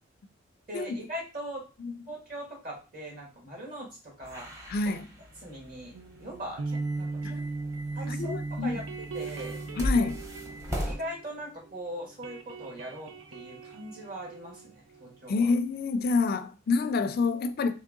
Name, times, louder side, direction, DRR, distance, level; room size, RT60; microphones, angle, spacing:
voice 1, 0.7-1.6 2.1-4.5 4.9-5.0 5.4-5.9 6.2-7.4 7.9-8.8 9.1-9.6 10.8-15.5, equal, 50° right, 1.8 m, -40 dB
sound 1, 4.2-11.0, equal, 15° right, 0.8 m, -38 dB
voice 2, 4.7-5.1 7.2-7.4 8.1-8.8 9.8-10.2 15.3-17.7, left 4 dB, 50° left, 0.4 m, -27 dB
sound 2, 5.9-11.8 12.0-15.5, right 3 dB, 85° right, 0.5 m, -38 dB
3.6 x 3.1 x 3.6 m
head